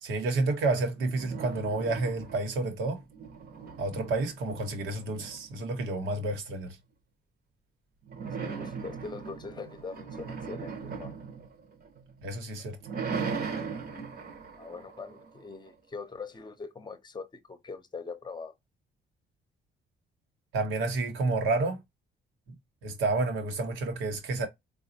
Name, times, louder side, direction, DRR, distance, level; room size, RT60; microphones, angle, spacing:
voice 1, 0.0-3.0 3.8-6.8 12.2-12.8 20.5-21.8 22.5-22.6 22.8-24.5, right 3 dB, 90° right, 1.2 m, -30 dB
sound 1, 1.0-2.6 3.0-5.7 8.1-12.2 12.6-15.7, right 5 dB, 50° right, 1.0 m, -39 dB
voice 2, 8.4-11.1 14.6-18.5, left 4 dB, 20° left, 0.8 m, -42 dB
4.1 x 2.3 x 2.7 m
cardioid pair, 90°, 20 cm